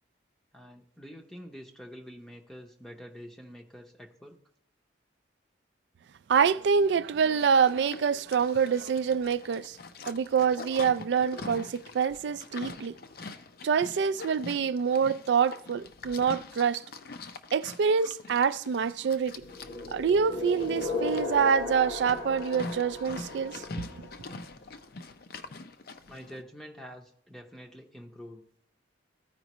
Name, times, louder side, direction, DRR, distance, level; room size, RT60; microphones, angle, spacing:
voice 1, 0.5-4.4 26.1-28.4, equal, ahead, 0.6 m, -46 dB
voice 2, 6.3-9.8 10.1-13.0 13.6-16.8 17.5-19.4 19.9-23.6 24.0-24.1, right 6 dB, 65° right, 0.3 m, -26 dB
Livestock farm animals working animals, 7.2-26.4, left 3 dB, 50° left, 0.5 m, -44 dB
sound 1, 19.4-24.4, left 3 dB, 85° left, 1.1 m, -36 dB
15.0 x 5.0 x 3.0 m
head